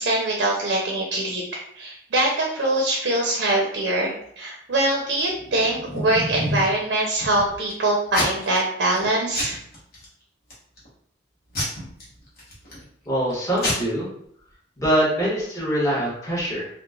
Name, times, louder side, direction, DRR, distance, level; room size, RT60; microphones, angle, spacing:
voice 1, 0.0-9.6, right 1 dB, 65° right, -1 dB, 0.5 m, -23 dB
Packing tape duct tape / Tearing, 5.4-6.7 7.2-7.7 8.1-8.6 8.9-9.1 9.3-10.0 10.5-10.9 11.5-12.8 13.3-13.4 13.6-13.7, left 1 dB, 55° left, 1.0 m, -29 dB
voice 2, 13.1-14.1 14.8-16.7, right 1 dB, 15° left, -7 dB, 0.9 m, -23 dB
2.9 x 2.1 x 2.3 m, 0.66 s
head